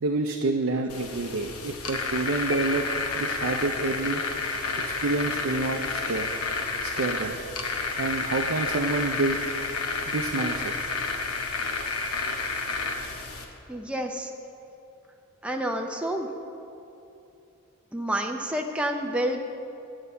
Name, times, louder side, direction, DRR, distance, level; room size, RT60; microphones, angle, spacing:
voice 1, 0.0-2.9 3.1-4.2 4.8-6.3 6.8-7.4 8.0-9.4 10.1-10.7, right 3 dB, 60° right, 3 dB, 0.5 m, -28 dB
sound 1, 0.9-13.4, left 4 dB, 75° left, 1.0 m, -30 dB
sound 2, 2.5-3.7, left 4 dB, 20° left, 1.0 m, -39 dB
voice 2, 13.7-14.3 15.4-16.3 17.9-19.4, right 1 dB, 5° right, 2 dB, 0.5 m, -29 dB
9.7 x 5.5 x 8.1 m, 2.8 s
head